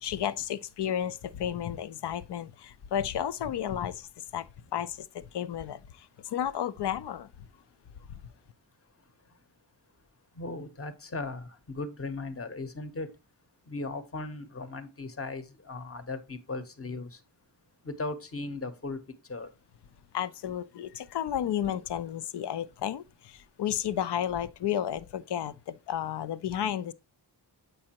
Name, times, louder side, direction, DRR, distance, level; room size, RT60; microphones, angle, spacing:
voice 1, 0.0-4.5 4.7-7.3 8.1-8.2 20.1-26.9, left 10 dB, 70° left, 0.6 m, -32 dB
voice 2, 10.4-13.1 13.7-17.2 17.8-19.0 19.3-19.5, left 3 dB, 30° left, 0.9 m, -37 dB
7.5 x 5.4 x 2.9 m
wide cardioid pair, 85°, 43 cm